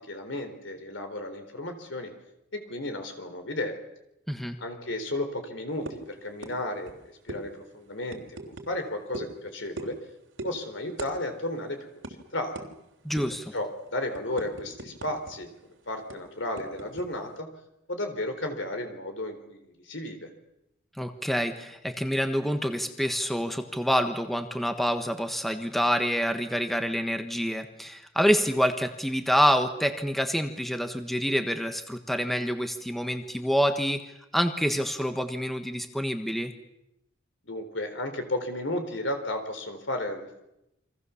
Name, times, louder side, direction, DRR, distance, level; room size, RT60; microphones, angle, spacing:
voice 1, 0.1-2.1 2.5-3.8 4.6-10.0 10.4-11.8 12.3-12.5 13.5-15.5 15.9-17.5 17.9-20.3 37.5-40.4, left 1 dB, 70° left, 7 dB, 3.9 m, -33 dB
voice 2, 4.3-4.6 13.0-13.5 21.0-34.0 34.3-36.5, equal, ahead, 7 dB, 1.4 m, -27 dB
sound 1, 5.9-6.1 6.4-6.6 6.8-7.0 7.3-7.4 8.1-8.7 9.1-9.3 9.8-10.0 10.4-10.5 11.0-11.1 11.4-11.6 12.0-12.1 12.5-12.7 13.2-13.4 13.8-15.3 15.6-15.7 16.1-17.0, right 2 dB, 75° right, 3.4 m, -39 dB
29.5 x 24.0 x 7.2 m, 0.87 s
head